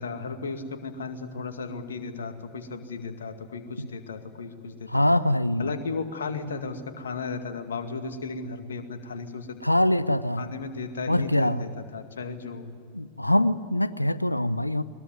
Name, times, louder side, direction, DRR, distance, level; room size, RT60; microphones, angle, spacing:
voice 1, 0.0-4.9 5.6-9.6 10.4-12.7, left 4 dB, 65° left, 7 dB, 2.1 m, -35 dB
voice 2, 4.9-5.7 9.6-10.5 11.1-11.7 12.9-14.8, left 1 dB, 85° left, 17 dB, 0.7 m, -23 dB
21.5 x 21.5 x 9.6 m, 2.1 s
figure-of-eight pair, 90°, 0 cm